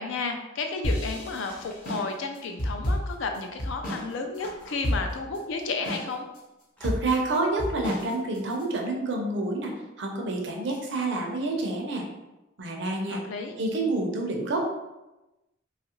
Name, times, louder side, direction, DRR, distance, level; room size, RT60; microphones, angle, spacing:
voice 1, 0.0-6.3 13.1-13.5, left 3 dB, 75° left, 5 dB, 0.4 m, -32 dB
sound 1, 0.8-4.1 4.4-4.5 4.8-5.4 5.9-6.4 6.8-8.6, equal, 45° left, 0.7 m, -30 dB
sound 2, 1.4-1.9 3.0-3.1 4.4-5.1 6.8-6.9, equal, 5° left, 0.4 m, -48 dB
voice 2, 6.8-9.7 10.0-12.0 12.6-13.2 13.6-14.6, right 2 dB, 65° right, 1 dB, 0.5 m, -28 dB
2.8 x 2.4 x 2.9 m, 1.0 s
head